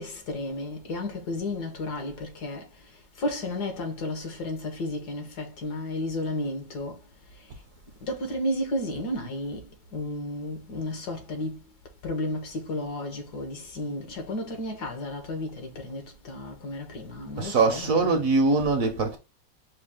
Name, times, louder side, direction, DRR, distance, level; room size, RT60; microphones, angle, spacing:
voice 1, 0.0-2.9 3.2-7.0 8.0-11.6 12.0-18.2, left 1 dB, 70° left, 1.7 m, -33 dB
voice 2, 17.4-19.2, right 3 dB, 60° right, 1.1 m, -22 dB
5.6 x 2.4 x 3.5 m
omnidirectional pair, 1.9 m